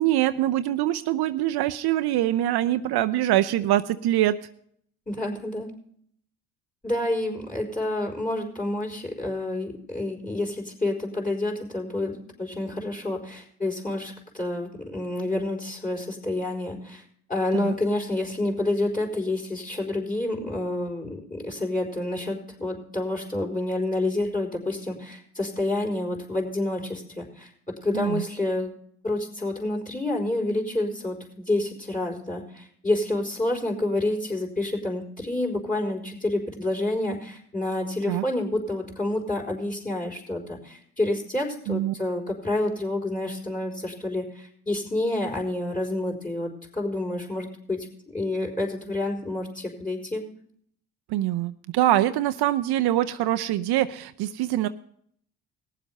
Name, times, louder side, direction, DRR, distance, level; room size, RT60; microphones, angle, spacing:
voice 1, 0.0-4.4 17.5-17.7 27.9-28.2 38.1-38.2 41.7-41.9 51.1-54.7, right 13 dB, 60° right, 10 dB, 0.7 m, -24 dB
voice 2, 5.1-5.7 6.8-17.0 17.3-27.5 27.8-28.7 29.0-50.2, left 2 dB, 20° left, -1 dB, 4.4 m, -28 dB
18.5 x 7.4 x 5.3 m, 0.64 s
hypercardioid pair, 60°, 44 cm